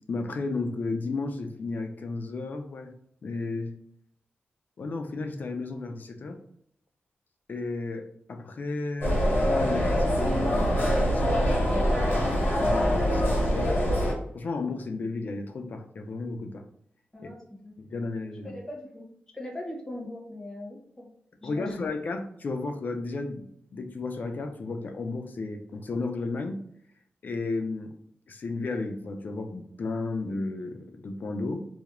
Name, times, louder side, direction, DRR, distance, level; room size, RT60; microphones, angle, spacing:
voice 1, 0.1-2.9 3.2-3.8 4.8-6.4 7.5-9.2 9.5-11.8 12.6-13.8 14.3-16.6 17.8-18.6 21.4-26.6 27.2-27.9 28.3-31.7, left 3 dB, 55° left, 5 dB, 0.4 m, -33 dB
sound 1, 9.0-14.1, equal, 80° left, 0.9 m, -24 dB
voice 2, 17.1-17.8 18.4-19.1 19.3-21.1 21.4-21.9, left 1 dB, 15° left, -2 dB, 0.7 m, -40 dB
2.3 x 2.0 x 2.9 m, 0.68 s
wide cardioid pair, 145°, 4 cm